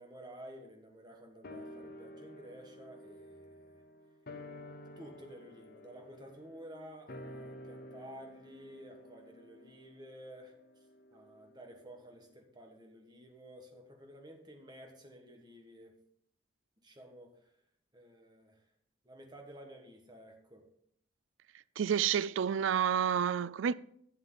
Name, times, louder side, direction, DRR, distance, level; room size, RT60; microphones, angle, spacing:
voice 1, 0.0-3.8 5.0-10.9 11.1-15.9 16.8-17.5 17.9-18.6 19.0-20.7, equal, 20° right, 1.4 m, -52 dB
sound 1, 1.4-12.0 12.3-12.4, left 1 dB, 50° left, 0.7 m, -51 dB
voice 2, 21.8-23.7, right 8 dB, 75° right, 0.3 m, -29 dB
11.5 x 7.3 x 3.9 m
head